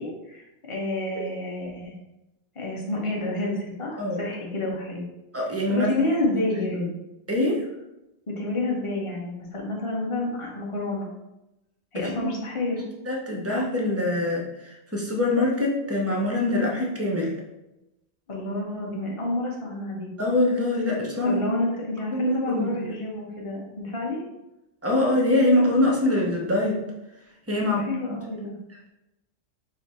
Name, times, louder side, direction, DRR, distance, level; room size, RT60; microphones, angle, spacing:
voice 1, 0.0-1.9 2.5-5.0 5.7-6.9 8.3-11.1 11.9-12.8 18.3-20.1 21.2-24.2 27.8-28.6, left 2 dB, 30° left, -2 dB, 0.8 m, -29 dB
voice 2, 5.3-5.9 7.3-7.6 11.9-12.3 13.1-17.3 20.2-21.4 22.1-22.7 24.8-26.8 27.5-27.8 28.1-28.2, left 1 dB, 25° right, -1 dB, 0.3 m, -24 dB
5.2 x 2.1 x 4.2 m, 0.95 s
omnidirectional pair, 1.4 m